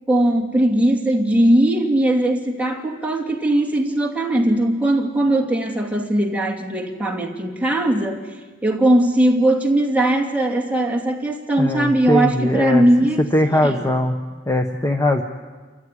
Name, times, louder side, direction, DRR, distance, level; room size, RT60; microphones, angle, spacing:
voice 1, 0.1-8.2 8.6-13.2 13.5-13.8, right 1 dB, 10° right, 0 dB, 2.5 m, -19 dB
voice 2, 11.6-12.8 13.3-14.2 14.5-15.2, left 1 dB, 15° left, 5 dB, 1.0 m, -20 dB
28.0 x 14.5 x 9.9 m, 1.4 s
head